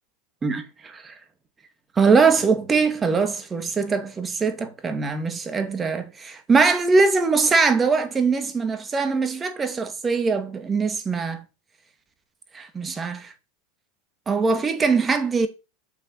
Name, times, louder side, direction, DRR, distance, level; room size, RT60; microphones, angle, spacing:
voice 1, 0.4-1.2 2.0-11.4 12.5-13.3 14.3-15.5, right 4 dB, 20° right, 2.2 m, -22 dB
9.2 x 5.6 x 7.8 m
supercardioid pair, 115°, 0 cm